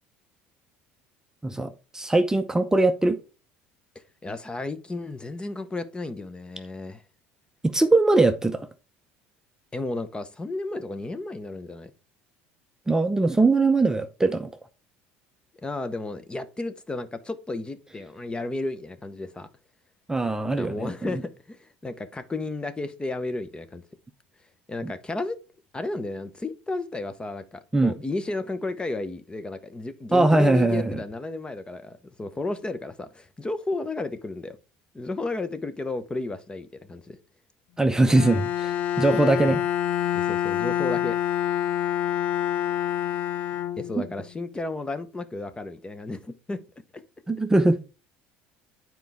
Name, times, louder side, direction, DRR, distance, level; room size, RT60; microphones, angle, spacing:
voice 1, 1.4-3.2 7.6-8.7 12.9-14.5 20.1-21.2 24.8-24.9 27.7-27.9 30.1-31.0 37.8-39.6 44.0-44.1 47.3-47.8, right 2 dB, 10° right, 0.7 m, -21 dB
voice 2, 3.9-7.0 9.7-11.9 15.6-19.5 20.5-23.8 24.7-25.4 25.7-34.6 34.9-37.2 40.1-41.2 43.8-46.6 46.9-47.0, left 2 dB, 20° left, 0.9 m, -33 dB
Bowed string instrument, 38.1-44.2, left 11 dB, 75° left, 0.8 m, -27 dB
9.1 x 4.6 x 3.5 m
hypercardioid pair, 75°, 5 cm